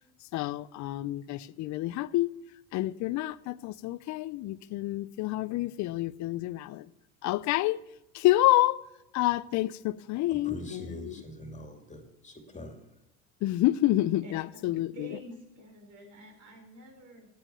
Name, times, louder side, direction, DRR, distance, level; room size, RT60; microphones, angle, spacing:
voice 1, 0.3-2.3 2.7-6.9 7.2-7.8 8.1-8.8 9.1-11.2 13.4-15.2, left 16 dB, 50° left, 0.5 m, -28 dB
voice 2, 10.4-12.8, equal, 20° left, 2.4 m, -43 dB
voice 3, 14.2-17.3, right 2 dB, 50° right, 4.5 m, -49 dB
8.9 x 8.7 x 6.7 m
supercardioid pair, 85°, 37 cm